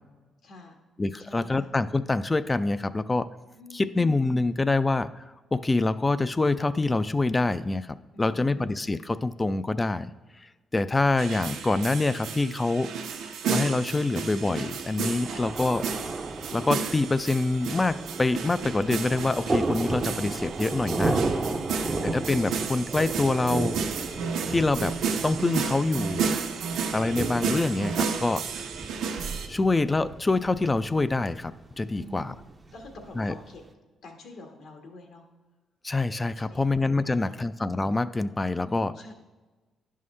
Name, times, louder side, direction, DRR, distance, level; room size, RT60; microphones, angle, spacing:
voice 1, 0.4-0.8 1.2-1.7 3.5-4.2 8.1-8.7 15.2-15.5 23.3-23.5 26.5-26.8 31.9-33.6 34.0-35.3 36.3-36.8 37.0-37.4 38.6-39.1, left 1 dB, 70° left, 3 dB, 1.4 m, -47 dB
voice 2, 1.0-3.3 3.7-5.1 5.5-10.1 10.7-12.9 13.5-15.9 16.5-21.2 22.0-23.8 24.5-25.0 25.2-26.4 26.9-28.4 29.5-32.3 33.2-33.3 35.8-38.9, left 2 dB, 20° left, 15 dB, 0.3 m, -25 dB
sound 1, 11.2-29.5, right 6 dB, 80° right, 0.7 m, -32 dB
Thunder, 14.7-33.7, right 3 dB, 25° right, 0.5 m, -34 dB
10.5 x 5.5 x 3.2 m, 1.2 s
cardioid pair, 90°, 0 cm